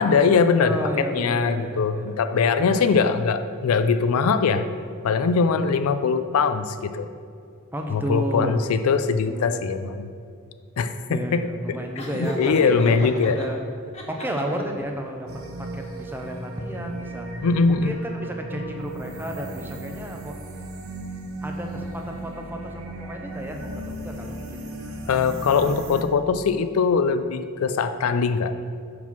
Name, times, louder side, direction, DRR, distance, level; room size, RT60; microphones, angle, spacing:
voice 1, 0.0-4.7 5.0-7.1 7.9-10.1 10.8-11.8 12.1-13.4 17.4-17.9 25.1-28.5, left 5 dB, 90° left, 11 dB, 0.4 m, -22 dB
voice 2, 0.6-2.8 7.7-8.6 9.2-9.6 11.1-12.9 13.3-13.6 14.1-15.3 15.6-17.3 17.7-20.4 21.4-23.6 23.9-24.7, equal, 10° right, 2 dB, 0.6 m, -32 dB
Laughter, 12.0-13.5 13.9-14.8, left 1 dB, 30° left, 1.0 m, -34 dB
sound 1, 15.3-26.0, right 1 dB, 75° right, 0.8 m, -36 dB
5.4 x 4.8 x 5.9 m, 2.2 s
head